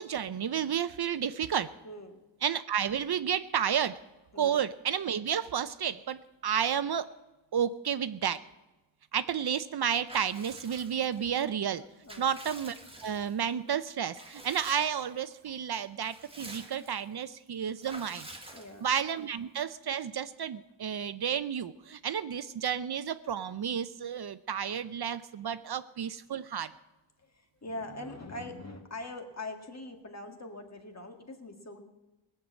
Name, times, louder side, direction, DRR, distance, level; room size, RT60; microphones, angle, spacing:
voice 1, 0.0-1.7 2.4-4.0 4.4-7.1 7.5-8.4 9.1-11.8 12.2-12.7 13.0-18.3 18.8-26.7, right 8 dB, 55° right, 13 dB, 0.6 m, -31 dB
voice 2, 1.8-2.2 4.3-4.6 12.0-12.3 18.5-18.9 27.6-31.8, left 2 dB, 35° left, 5 dB, 1.7 m, -42 dB
Water / Bathtub (filling or washing) / Liquid, 10.1-11.3 11.8-13.5 14.1-15.1 15.5-15.6 15.9-17.1 17.8-19.1, right 2 dB, 10° right, 1.6 m, -48 dB
19.0 x 6.7 x 8.1 m, 1.0 s
wide cardioid pair, 125°, 46 cm